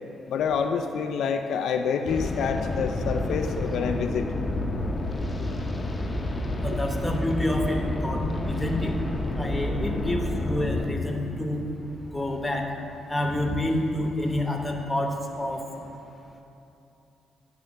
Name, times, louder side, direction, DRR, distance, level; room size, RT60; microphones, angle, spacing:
voice 1, 0.3-4.3, left 6 dB, 75° left, 6 dB, 0.3 m, -27 dB
sound 1, 2.1-12.8, left 2 dB, 25° left, 0.7 m, -30 dB
voice 2, 6.6-8.9 9.4-11.6 12.1-12.6 13.1-15.6, left 1 dB, 10° left, 2 dB, 1.0 m, -28 dB
9.3 x 3.4 x 6.3 m, 2.8 s
cardioid pair, 75°, 0 cm